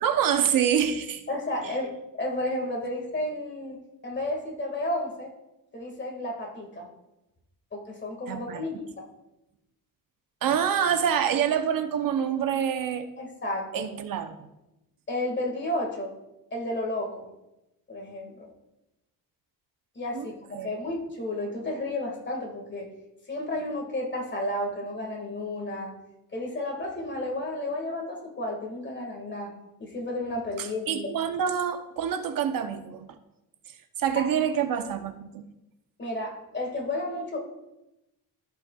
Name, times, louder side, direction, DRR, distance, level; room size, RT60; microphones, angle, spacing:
voice 1, 0.0-1.2 1.6-1.7 8.3-8.7 10.4-13.1 13.7-14.4 20.1-20.7 30.6-33.1 34.0-35.4, right 8 dB, 65° right, 8 dB, 0.7 m, -26 dB
voice 2, 1.3-5.3 5.7-6.9 7.7-9.1 13.2-13.9 15.1-16.1 16.5-17.3 17.9-18.5 20.0-22.9 23.3-25.9 26.3-29.5 29.8-31.1 34.2-34.3 36.0-37.4, left 1 dB, 30° left, 1 dB, 1.9 m, -32 dB
14.5 x 5.4 x 2.3 m, 0.93 s
cardioid pair, 130°, 37 cm